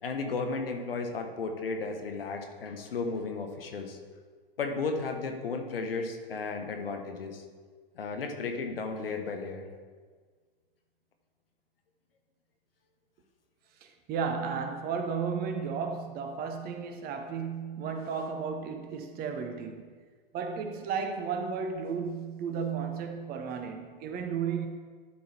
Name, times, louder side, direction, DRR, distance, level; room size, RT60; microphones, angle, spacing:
voice 1, 0.0-4.0 4.6-7.4 7.9-9.6, left 4 dB, 75° left, 1.1 m, -34 dB
voice 2, 13.8-19.9 20.3-24.7, right 6 dB, 30° right, 0.8 m, -34 dB
11.5 x 3.9 x 4.3 m
figure-of-eight pair, 95°, 29 cm